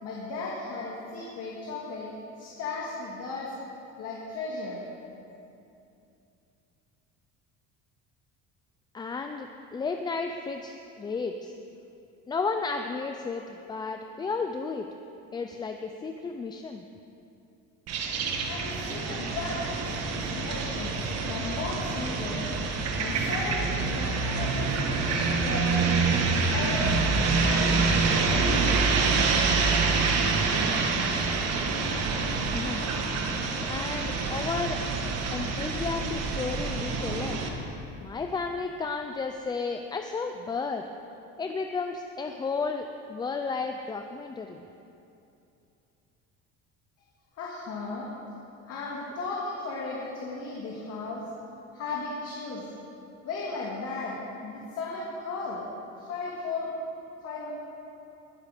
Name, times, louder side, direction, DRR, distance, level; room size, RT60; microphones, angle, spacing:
voice 1, 0.0-2.1 2.4-3.5 4.0-4.8 18.4-22.5 22.9-26.0 26.5-27.8 47.4-48.1 48.6-51.2 51.7-52.7 53.2-55.7 56.0-56.7 57.2-57.5, left 3 dB, 50° left, -4 dB, 2.1 m, -35 dB
voice 2, 8.9-11.5 12.3-14.9 15.3-16.8 32.5-32.9 33.7-34.8 35.3-37.4 38.0-40.8 41.4-44.6, left 4 dB, 15° left, 5 dB, 0.3 m, -33 dB
sound 1, 17.9-37.5, right 4 dB, 55° right, 1.5 m, -26 dB
21.0 x 8.2 x 5.0 m, 2.7 s
cardioid pair, 160°, 31 cm